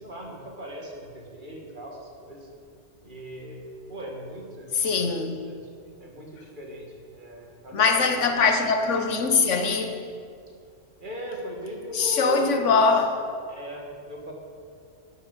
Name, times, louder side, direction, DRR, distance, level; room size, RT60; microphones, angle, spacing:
voice 1, 0.0-2.5 3.0-5.7 6.0-8.5 11.0-13.0 13.5-14.3, equal, 45° right, -1 dB, 2.1 m, -39 dB
voice 2, 4.8-5.4 7.7-10.0 11.9-13.1, left 4 dB, 90° left, 6 dB, 1.4 m, -22 dB
12.0 x 7.5 x 7.1 m, 2.3 s
omnidirectional pair, 1.2 m